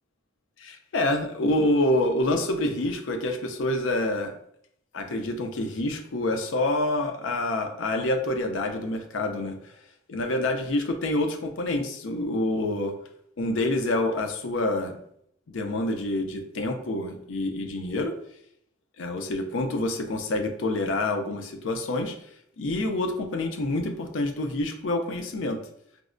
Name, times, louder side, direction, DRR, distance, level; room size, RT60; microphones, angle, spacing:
voice 1, 0.6-4.3 4.9-9.7 10.1-12.9 13.4-14.9 15.5-18.1 19.0-22.2 22.6-25.6, left 1 dB, 80° left, 5 dB, 0.5 m, -27 dB
4.6 x 2.0 x 2.5 m, 0.70 s
head